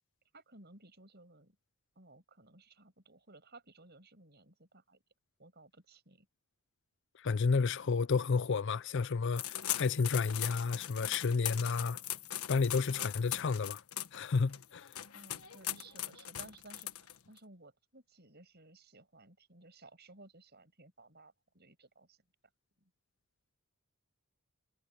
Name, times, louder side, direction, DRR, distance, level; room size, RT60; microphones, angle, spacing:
voice 1, 0.3-1.6 2.0-5.0 5.4-6.3 15.1-22.2 22.8-22.9, right 2 dB, 45° right, 7.5 m, -58 dB
voice 2, 7.2-12.0 12.5-13.8 14.1-14.9, left 4 dB, 55° left, 0.5 m, -31 dB
sound 1, 9.4-17.4, left 12 dB, 80° left, 1.4 m, -40 dB
head